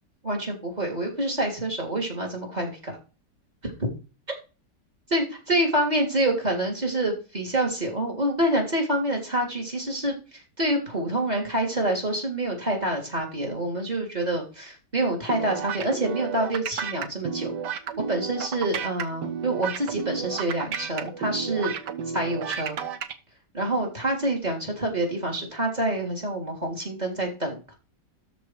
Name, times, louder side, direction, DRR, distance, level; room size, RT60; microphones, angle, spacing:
voice 1, 0.2-3.0 3.6-3.7 5.1-17.5 18.1-21.7 22.1-22.8 23.5-27.7, right 1 dB, 20° right, 2 dB, 3.4 m, -27 dB
sound 1, 15.3-23.1, right 7 dB, 70° right, 1.6 m, -32 dB
13.0 x 4.7 x 4.7 m, 0.32 s
omnidirectional pair, 1.9 m